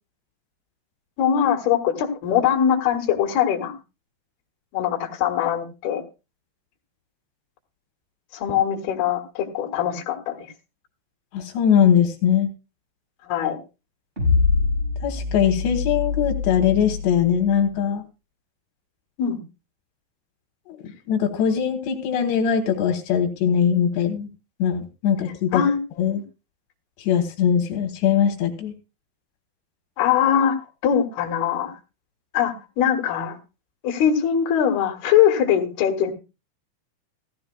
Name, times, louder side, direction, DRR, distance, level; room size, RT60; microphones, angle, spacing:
voice 1, 1.2-3.7 4.7-6.0 8.3-10.4 13.2-13.6 19.2-19.4 25.5-25.8 30.0-30.6 30.8-31.8 32.3-33.4 33.8-36.1, left 9 dB, 70° left, 4 dB, 3.6 m, -21 dB
voice 2, 11.3-12.5 15.0-18.0 20.7-24.3 24.6-25.6 26.0-26.2 27.0-28.7, left 8 dB, 85° left, 3 dB, 3.5 m, -21 dB
sound 1, 14.2-17.6, left 4 dB, 15° right, 6.3 m, -24 dB
16.0 x 14.0 x 2.3 m, 0.29 s
omnidirectional pair, 4.9 m